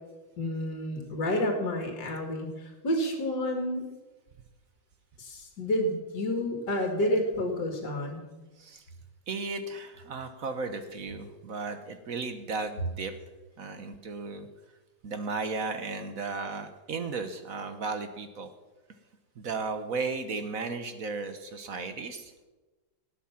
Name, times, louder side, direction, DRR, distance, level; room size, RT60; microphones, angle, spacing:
voice 1, 0.4-3.8 5.2-8.3, left 1 dB, 55° left, 3 dB, 2.6 m, -30 dB
voice 2, 9.3-13.1 13.6-14.5 15.0-18.5 19.4-22.5, right 4 dB, 50° right, 9 dB, 1.2 m, -35 dB
18.0 x 8.5 x 5.8 m, 1.2 s
omnidirectional pair, 2.2 m